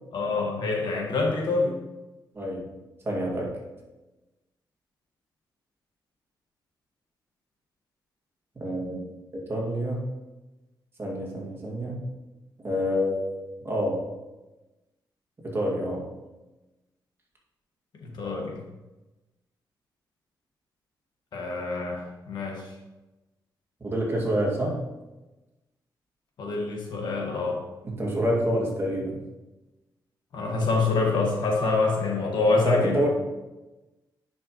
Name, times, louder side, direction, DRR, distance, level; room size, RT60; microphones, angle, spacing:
voice 1, 0.1-1.7 18.0-18.6 21.3-22.7 26.4-27.6 30.3-33.1, left 3 dB, 75° left, 0 dB, 1.6 m, -26 dB
voice 2, 2.3-2.7 3.0-3.6 8.6-9.1 9.5-10.1 11.0-12.1 12.6-14.0 15.4-16.1 23.8-24.8 27.8-29.2 32.6-33.1, equal, 30° right, -3 dB, 2.1 m, -27 dB
9.9 x 5.4 x 3.1 m, 1.1 s
cardioid pair, 100°, 8 cm